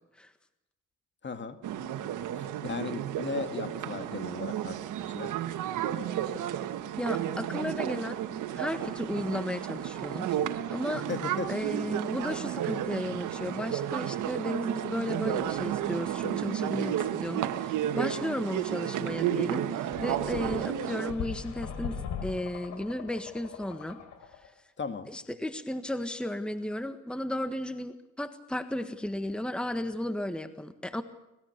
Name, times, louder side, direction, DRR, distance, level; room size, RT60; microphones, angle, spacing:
voice 1, 1.2-1.6 2.4-5.3 10.9-11.5 24.8-25.1, left 5 dB, 40° left, 8 dB, 2.1 m, -37 dB
sound 1, 1.6-21.1, right 11 dB, 85° right, 1.5 m, -32 dB
voice 2, 7.0-8.2 8.5-11.0 11.5-24.0 25.1-31.0, left 1 dB, 5° left, 9 dB, 1.5 m, -34 dB
sound 2, 19.9-24.5, left 7 dB, 75° left, 4.1 m, -40 dB
25.0 x 20.0 x 6.8 m, 0.94 s
cardioid pair, 90°, 30 cm